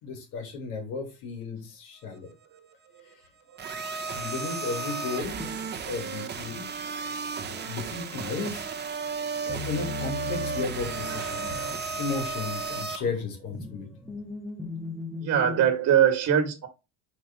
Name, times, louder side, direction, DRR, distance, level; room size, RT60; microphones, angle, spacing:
voice 1, 0.0-2.3 4.1-5.5 5.9-6.7 7.4-8.7 9.4-13.9, left 4 dB, 80° left, 2 dB, 2.8 m, -34 dB
sound 1, 3.6-13.0, right 5 dB, 30° right, 1.1 m, -34 dB
sound 2, 5.4-6.1 9.5-12.6 13.1-15.7, left 3 dB, ahead, 1.4 m, -38 dB
voice 2, 15.2-16.7, right 9 dB, 50° right, 3 dB, 1.8 m, -23 dB
4.6 x 4.5 x 5.3 m, 0.28 s
cardioid pair, 115°, 32 cm